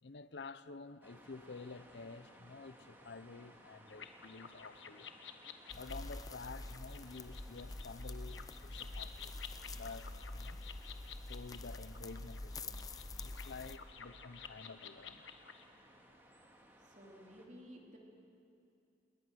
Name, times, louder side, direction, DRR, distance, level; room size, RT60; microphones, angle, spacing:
voice 1, 0.0-5.1 5.7-9.3 9.7-10.6 11.2-15.3, left 4 dB, 70° left, 0.7 m, -50 dB
sound 1, 1.0-17.5, right 1 dB, 10° right, 2.2 m, -62 dB
sound 2, 3.9-15.7, left 7 dB, 90° left, 1.3 m, -53 dB
sound 3, 5.7-13.8, left 2 dB, 20° left, 0.7 m, -46 dB
voice 2, 16.8-18.0, equal, 40° right, 3.5 m, -54 dB
28.5 x 20.5 x 6.4 m
head